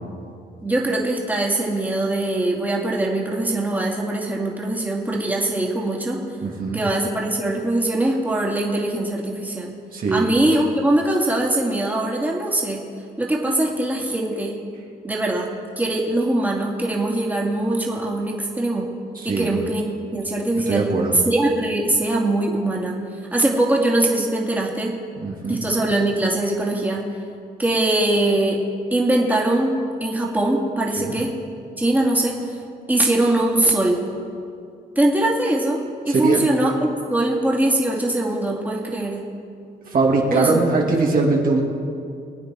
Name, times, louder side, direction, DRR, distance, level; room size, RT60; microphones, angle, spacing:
voice 1, 0.6-6.2 6.7-9.7 10.1-12.8 13.2-14.6 15.0-18.9 19.2-20.9 21.2-23.0 23.3-25.0 25.5-27.1 27.6-28.6 28.9-31.3 31.8-32.6 32.9-34.0 35.0-39.2 40.3-40.5, right 1 dB, 10° right, -3 dB, 2.6 m, -22 dB
voice 2, 6.4-6.8 9.9-10.3 19.2-19.5 20.7-21.2 25.2-25.6 31.0-31.1 36.1-36.4 39.9-41.6, right 3 dB, 55° right, -2 dB, 2.5 m, -21 dB
24.0 x 9.3 x 4.6 m, 2.4 s
cardioid pair, 95°, 18 cm